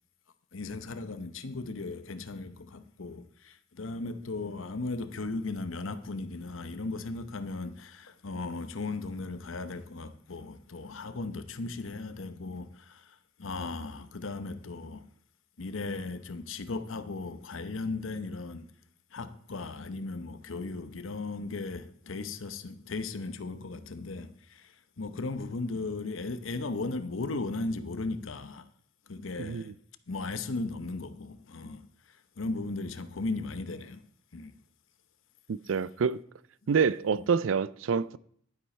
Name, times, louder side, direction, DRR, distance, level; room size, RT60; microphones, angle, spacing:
voice 1, 0.5-15.0 15.6-18.7 19.1-28.6 29.1-29.7 30.1-31.8 32.4-34.0 34.3-34.5 37.1-37.2, left 3 dB, 85° left, 0.8 m, -37 dB
voice 2, 29.4-29.7 35.5-36.2 36.7-38.2, right 6 dB, 80° right, 0.4 m, -27 dB
11.5 x 10.0 x 4.3 m
head